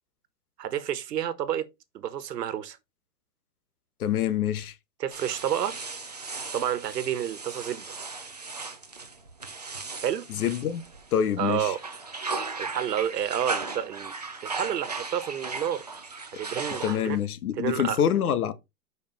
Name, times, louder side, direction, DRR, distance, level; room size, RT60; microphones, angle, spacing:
voice 1, 0.6-1.7 1.9-2.8 5.0-5.8 6.5-7.9 10.0-10.3 11.4-11.8 12.6-14.1 14.4-15.8 16.3-17.2 17.6-18.0, right 10 dB, 85° right, 1.4 m, -30 dB
voice 2, 4.0-4.7 10.3-10.8 11.1-11.7 16.8-18.5, left 9 dB, 65° left, 1.3 m, -26 dB
sound 1, 5.1-11.3 11.7-17.2, right 3 dB, 30° right, 0.4 m, -37 dB
6.9 x 5.2 x 4.1 m
hypercardioid pair, 175°, 47 cm